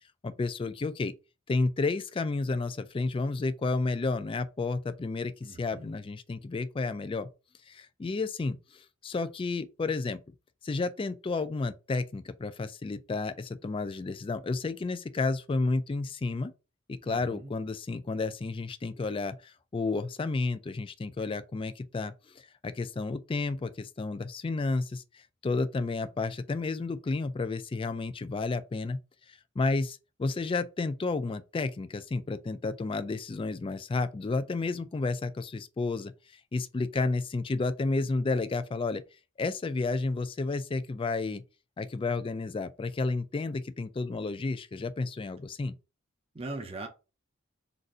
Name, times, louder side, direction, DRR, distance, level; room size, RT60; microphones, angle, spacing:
voice 1, 0.2-1.1 1.5-7.3 7.7-10.2 10.6-16.5 16.9-29.0 29.3-36.1 36.5-39.0 39.4-41.4 41.8-45.8, left 3 dB, 25° left, 0.3 m, -31 dB
voice 2, 5.4-5.9 17.0-17.5 46.3-46.9, right 2 dB, 30° right, 0.6 m, -40 dB
4.0 x 2.6 x 4.8 m
head